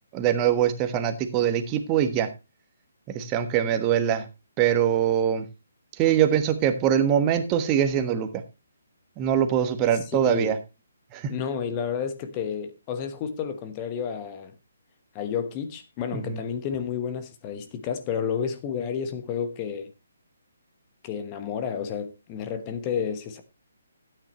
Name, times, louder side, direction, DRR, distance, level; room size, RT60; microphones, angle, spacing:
voice 1, 0.1-2.3 3.1-4.3 4.6-5.5 6.0-8.4 9.2-10.6 11.1-11.3 16.1-16.4, right 9 dB, 25° right, 1.3 m, -23 dB
voice 2, 10.2-10.6 11.3-14.5 15.1-19.9 21.0-23.4, left 7 dB, 25° left, 1.1 m, -31 dB
13.0 x 9.2 x 3.0 m
figure-of-eight pair, 145°, 0 cm